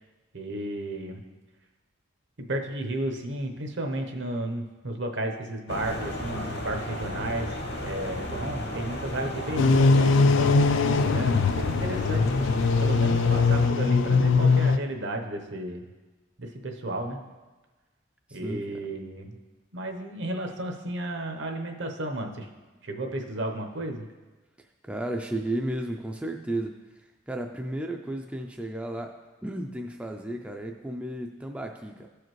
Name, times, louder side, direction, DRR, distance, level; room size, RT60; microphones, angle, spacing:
voice 1, 0.3-1.2 2.4-7.5 7.8-12.5 12.8-15.8 16.4-17.2 18.3-19.4 19.7-22.5 22.8-24.1, right 1 dB, 70° right, 4 dB, 0.8 m, -33 dB
sound 1, 5.7-13.7, left 1 dB, 55° left, 1.0 m, -34 dB
sound 2, 9.6-14.8, left 4 dB, 75° left, 0.3 m, -21 dB
voice 2, 18.3-18.8 24.6-29.1 29.4-32.1, right 1 dB, 5° right, 2 dB, 0.3 m, -34 dB
14.0 x 4.9 x 3.1 m, 1.2 s
head